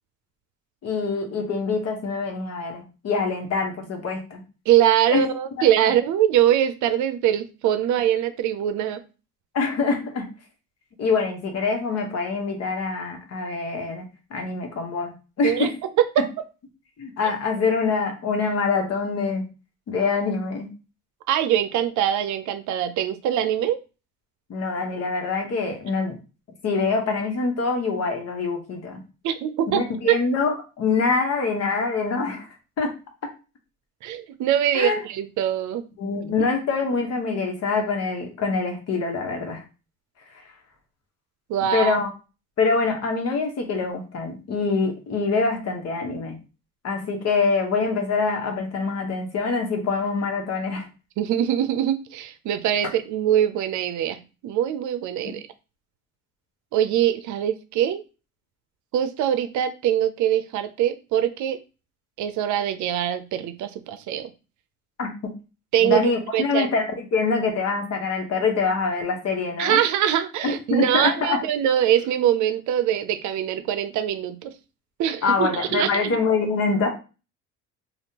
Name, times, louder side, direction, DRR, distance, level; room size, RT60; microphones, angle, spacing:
voice 1, 0.8-4.4 5.1-5.3 5.6-5.7 9.5-10.3 11.0-14.0 14.3-15.8 17.0-19.4 19.9-20.7 24.5-26.2 26.6-29.0 29.7-32.5 32.8-32.9 34.7-35.0 36.0-39.6 40.3-40.4 41.7-42.1 42.6-46.4 46.8-50.9 65.0-65.3 65.8-69.8 70.4-71.4 75.2-76.9, left 4 dB, 55° left, 3 dB, 1.1 m, -25 dB
voice 2, 4.7-9.0 15.4-15.7 16.0-16.4 21.3-23.8 29.2-30.2 34.0-35.8 41.5-42.0 51.2-55.4 56.7-58.0 58.9-61.6 62.2-64.3 65.7-66.0 66.3-66.7 69.6-74.5 75.0-76.2, right 10 dB, 75° right, 10 dB, 0.5 m, -23 dB
3.5 x 2.4 x 2.8 m, 0.32 s
cardioid pair, 90°, 30 cm